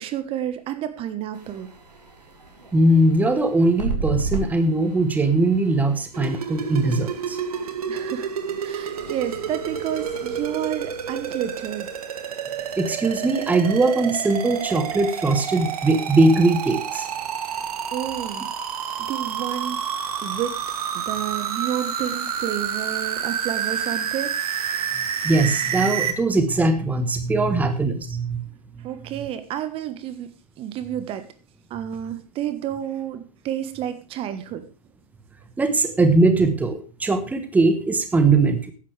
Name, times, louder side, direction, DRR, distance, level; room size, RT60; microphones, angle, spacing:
voice 1, 0.0-1.7 7.9-8.3 8.6-11.9 17.4-17.6 17.9-18.5 19.1-19.8 20.2-20.6 20.9-24.3 28.8-30.3 30.6-31.2 31.7-34.6, right 11 dB, 25° right, 11 dB, 1.3 m, -30 dB
sound 1, 1.3-12.0, right 3 dB, 85° right, 4.5 m, -36 dB
voice 2, 2.7-7.4 12.8-17.0 25.2-28.4 35.6-38.7, right 2 dB, 10° right, 9 dB, 1.3 m, -20 dB
sound 2, 6.1-26.1, right 8 dB, 65° right, 2.5 m, -29 dB
15.0 x 11.0 x 3.4 m, 0.37 s
figure-of-eight pair, 110°, 21 cm